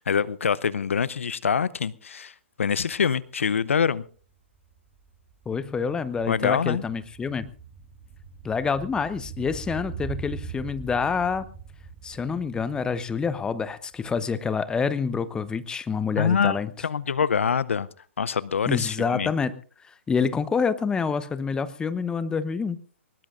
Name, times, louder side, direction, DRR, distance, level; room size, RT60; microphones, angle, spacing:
voice 1, 0.0-4.0 6.3-6.8 16.2-16.6 16.8-17.9 18.2-19.3, left 6 dB, 75° left, 0.6 m, -25 dB
sound 1, 4.2-14.3 14.6-14.7, right 5 dB, 25° right, 3.1 m, -42 dB
voice 2, 5.5-7.5 8.4-11.4 12.0-16.7 18.7-19.6 20.1-22.8, left 5 dB, 10° left, 0.9 m, -27 dB
23.5 x 20.0 x 2.5 m
hypercardioid pair, 125°, 7 cm